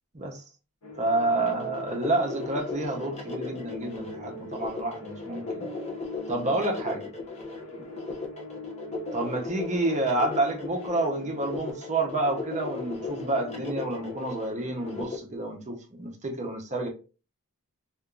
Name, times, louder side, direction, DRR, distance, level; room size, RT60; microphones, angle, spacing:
voice 1, 0.1-0.4 1.0-5.7 6.3-7.1 9.1-16.9, right 2 dB, 30° right, 0.8 m, -29 dB
sound 1, 0.8-15.0, equal, 80° left, 1.0 m, -43 dB
sound 2, 1.5-15.2, left 3 dB, 30° left, 0.7 m, -37 dB
3.4 x 2.5 x 2.4 m
head